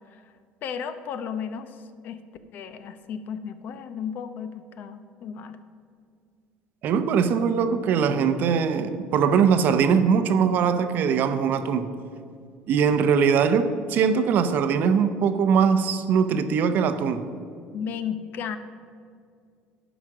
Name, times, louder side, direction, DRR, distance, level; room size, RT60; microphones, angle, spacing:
voice 1, 0.6-2.2 2.5-5.6 17.7-18.6, left 7 dB, 50° left, 10 dB, 0.7 m, -34 dB
voice 2, 6.8-11.9 12.7-17.2, right 6 dB, 50° right, 10 dB, 0.7 m, -21 dB
11.0 x 5.1 x 6.1 m, 2.2 s
cardioid pair, 125°, 4 cm